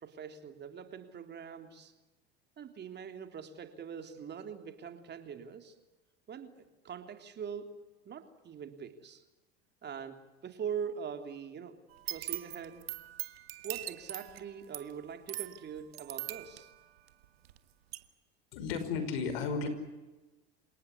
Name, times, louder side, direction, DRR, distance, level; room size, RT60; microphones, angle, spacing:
voice 1, 0.0-1.9 2.6-5.8 6.3-7.8 8.1-9.2 9.8-11.8 12.1-12.9 13.6-16.7, right 7 dB, 35° right, 7 dB, 3.4 m, -43 dB
sound 1, 11.9-17.6 17.9-18.0, right 14 dB, 90° right, 1.7 m, -41 dB
voice 2, 18.5-19.7, left 5 dB, 80° left, 10 dB, 5.6 m, -33 dB
28.5 x 18.5 x 9.9 m, 1.1 s
hypercardioid pair, 95°, 29 cm